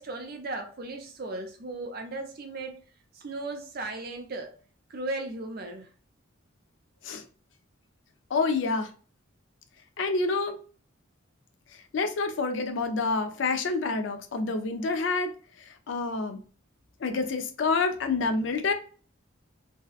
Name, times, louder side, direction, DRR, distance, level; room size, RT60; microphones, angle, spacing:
voice 1, 0.0-2.8 3.1-4.5 4.9-5.9, right 2 dB, 45° right, 4 dB, 0.5 m, -36 dB
voice 2, 8.3-8.9 10.0-10.6 11.9-15.3 15.6-16.4 17.0-18.7, left 3 dB, 65° left, 7 dB, 0.4 m, -28 dB
2.6 x 2.1 x 2.3 m, 0.40 s
head